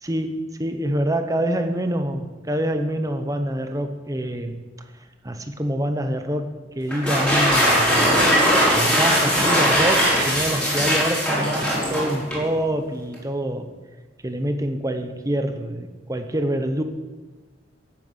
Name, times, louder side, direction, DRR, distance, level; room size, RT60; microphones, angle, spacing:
voice 1, 0.0-4.6 5.2-8.2 8.7-13.7 14.2-16.8, right 1 dB, 20° right, 7 dB, 1.0 m, -26 dB
Light Metal Crash, 6.9-12.5, equal, 5° left, 4.7 m, -20 dB
12.0 x 9.2 x 8.1 m, 1.3 s
head